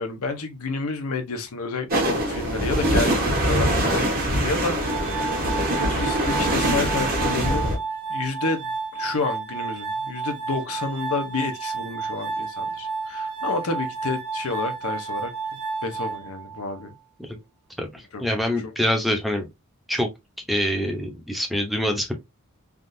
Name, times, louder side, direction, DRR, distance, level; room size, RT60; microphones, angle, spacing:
voice 1, 0.0-5.0 5.6-7.7 8.1-15.3 15.8-16.9 18.1-18.2 18.6-18.7, left 3 dB, 75° left, 0.7 m, -30 dB
sound 1, 1.9-7.8, right 1 dB, 40° right, 1.0 m, -23 dB
Glass, 4.8-16.8, right 4 dB, 70° right, 1.2 m, -31 dB
voice 2, 17.8-19.5 19.9-20.1 20.5-22.1, equal, ahead, 0.6 m, -25 dB
3.5 x 2.4 x 2.6 m
head